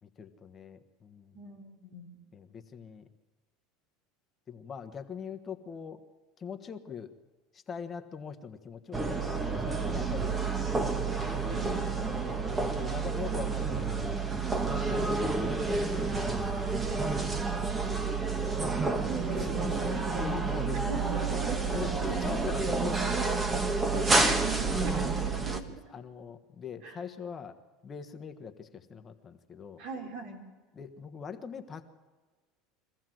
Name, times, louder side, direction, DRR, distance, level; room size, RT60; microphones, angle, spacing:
voice 1, 0.0-1.4 2.3-3.1 4.5-6.0 6.4-7.1 7.5-10.9 12.0-12.3 12.7-14.2 14.6-18.0 18.3-18.5 20.2-21.1 21.7-23.8 24.9-25.1 25.4-27.6 27.8-29.8 30.7-31.8, left 6 dB, 30° left, 7 dB, 1.3 m, -42 dB
voice 2, 1.3-2.2 11.5-12.1 19.0-20.3 20.8-22.1 23.9-25.7 26.8-27.0 29.8-30.4, right 3 dB, 65° right, 3 dB, 4.1 m, -40 dB
sound 1, 8.9-25.6, right 4 dB, 20° right, 1.5 m, -29 dB
23.5 x 15.0 x 7.8 m, 1.3 s
supercardioid pair, 120°, 0 cm